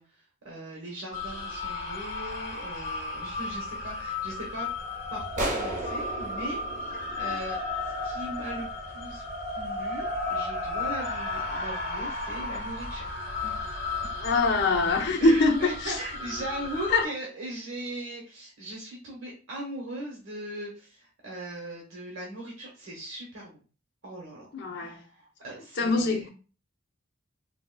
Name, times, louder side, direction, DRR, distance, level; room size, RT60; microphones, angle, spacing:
voice 1, 0.0-4.7 5.1-6.9 7.2-9.2 9.5-13.0 13.4-13.5 15.2-23.6 24.0-24.5 24.8-26.3, right 1 dB, 75° right, 1.0 m, -39 dB
sound 1, 1.1-17.0, left 3 dB, 35° left, 1.6 m, -34 dB
sound 2, 5.4-8.0, right 2 dB, 40° right, 0.8 m, -35 dB
voice 2, 14.2-16.0 16.9-17.1 24.5-25.0 25.8-26.3, left 3 dB, 55° left, 0.7 m, -24 dB
3.8 x 2.9 x 2.2 m
head